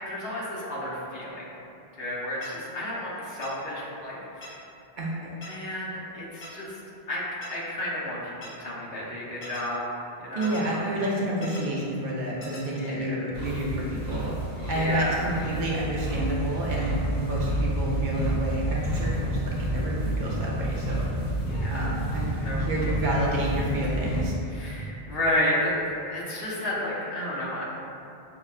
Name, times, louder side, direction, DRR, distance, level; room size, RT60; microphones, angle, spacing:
voice 1, 0.1-1.4 2.0-4.6 5.4-6.8 7.1-9.9 10.2-10.8 12.7-13.2 14.6-15.2 17.0-17.6 21.5-21.9 22.3-22.9 24.5-27.6, left 1 dB, 75° left, -6 dB, 1.0 m, -32 dB
sound 1, 2.4-2.5 3.4-3.5 4.4-4.5 5.4-5.5 6.4-6.5 7.4-7.5 8.4-8.5 9.4-9.6 10.4-10.6 11.4-11.6 12.4-12.6, left 2 dB, 50° left, 0.8 m, -41 dB
voice 2, 10.4-14.4 14.7-21.1 21.7-22.3 22.6-24.3, right 1 dB, 60° right, -5 dB, 0.6 m, -29 dB
sound 2, 13.3-24.3, right 1 dB, 10° left, 1.0 m, -29 dB
5.5 x 2.2 x 2.4 m, 2.7 s
omnidirectional pair, 1.0 m